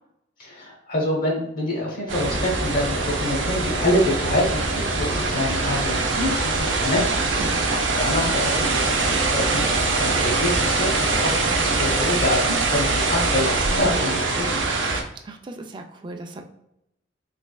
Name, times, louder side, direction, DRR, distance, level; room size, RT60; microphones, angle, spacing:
voice 1, 0.4-7.3 8.0-14.8, left 1 dB, 50° left, -2 dB, 1.0 m, -26 dB
sound 1, 2.1-15.0, right 3 dB, 90° right, 0.6 m, -23 dB
sound 2, 2.3-13.4, equal, 50° right, 0.9 m, -34 dB
voice 2, 15.2-16.4, right 2 dB, 25° right, 4 dB, 0.3 m, -37 dB
3.3 x 3.2 x 2.3 m, 0.80 s
head